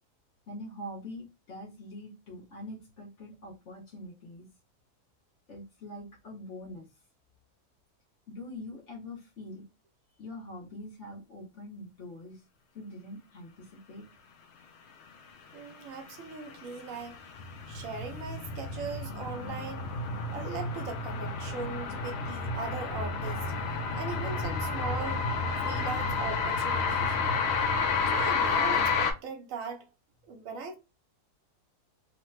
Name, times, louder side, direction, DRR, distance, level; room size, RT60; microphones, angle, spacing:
voice 1, 0.5-4.5 5.5-6.9 8.3-9.7 10.2-12.4 12.7-14.1, left 1 dB, 55° left, 1.0 m, -44 dB
voice 2, 15.5-17.2 17.7-19.9 20.3-23.5 23.9-25.2 25.6-27.1 28.1-29.9 30.2-30.8, right 4 dB, 65° right, 1.0 m, -39 dB
sound 1, 16.3-29.1, left 4 dB, 70° left, 0.6 m, -30 dB
3.2 x 2.1 x 3.0 m
omnidirectional pair, 1.7 m